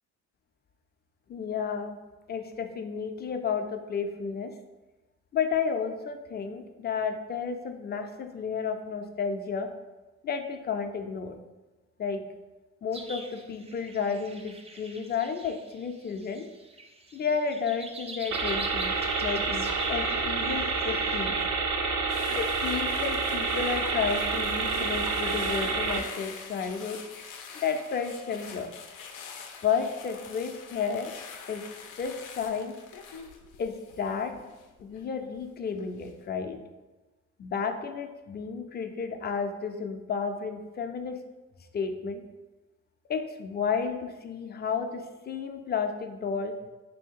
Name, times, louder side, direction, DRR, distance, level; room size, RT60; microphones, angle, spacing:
voice 1, 1.3-2.0 2.3-4.5 5.3-9.7 10.2-11.3 12.0-12.2 12.8-16.5 17.1-21.4 22.4-27.0 27.6-28.7 29.6-31.1 31.5-31.6 32.0-32.7 33.6-34.3 34.8-36.6 37.4-41.2 41.7-42.2 43.1-46.5, left 6 dB, 35° left, 6 dB, 0.4 m, -32 dB
sound 1, 12.9-21.3, right 2 dB, 20° right, 0.5 m, -44 dB
sound 2, 18.3-26.0, right 4 dB, 70° right, 0.6 m, -28 dB
sound 3, 22.1-35.4 35.8-36.1, left 6 dB, 85° left, 0.5 m, -46 dB
3.0 x 2.7 x 4.4 m, 1.1 s
cardioid pair, 90°, 30 cm